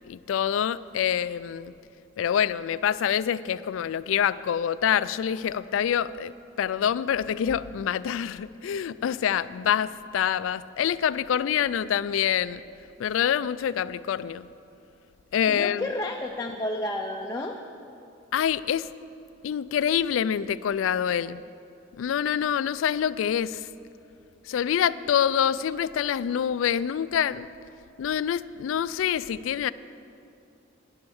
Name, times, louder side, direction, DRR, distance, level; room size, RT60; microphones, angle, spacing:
voice 1, 0.1-1.7 2.2-6.3 6.6-12.6 13.0-14.5 15.3-15.9 18.3-18.9 19.4-21.4 22.0-23.7 24.5-27.5 28.0-29.7, left 9 dB, 85° left, 17 dB, 0.3 m, -26 dB
voice 2, 15.5-17.5, left 1 dB, 15° left, 1 dB, 0.5 m, -31 dB
10.5 x 7.9 x 7.0 m, 2.7 s
head